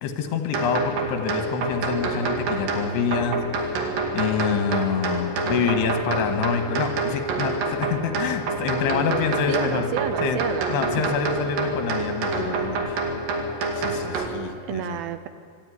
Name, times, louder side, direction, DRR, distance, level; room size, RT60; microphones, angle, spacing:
voice 1, 0.0-3.8 4.1-9.9 10.2-10.4 10.7-13.0 13.7-15.0, left 6 dB, 80° left, 7 dB, 3.6 m, -26 dB
sound 1, 0.5-14.3, right 3 dB, 60° right, 3.6 m, -27 dB
voice 2, 9.5-10.7 14.7-15.3, right 10 dB, 75° right, 11 dB, 2.3 m, -30 dB
25.5 x 12.0 x 9.7 m, 2.4 s
omnidirectional pair, 4.8 m